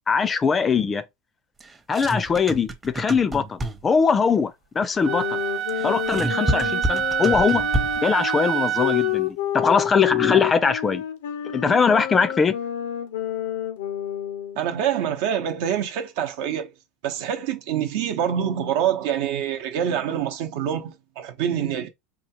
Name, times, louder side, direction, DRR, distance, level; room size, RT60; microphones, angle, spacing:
voice 1, 0.1-1.0 1.9-5.4 5.8-7.6 8.0-11.0 11.5-12.6, left 5 dB, 25° left, 0.5 m, -21 dB
sound 1, 1.6-4.0 5.7-8.2, right 1 dB, 20° right, 0.7 m, -28 dB
sound 2, 5.0-14.7, left 11 dB, 85° left, 0.6 m, -29 dB
Wind instrument woodwind instrument, 5.0-9.2, right 10 dB, 45° right, 0.4 m, -27 dB
voice 2, 14.5-16.7 17.0-21.9, right 9 dB, 70° right, 0.8 m, -26 dB
4.2 x 2.4 x 2.9 m
supercardioid pair, 105°, 0 cm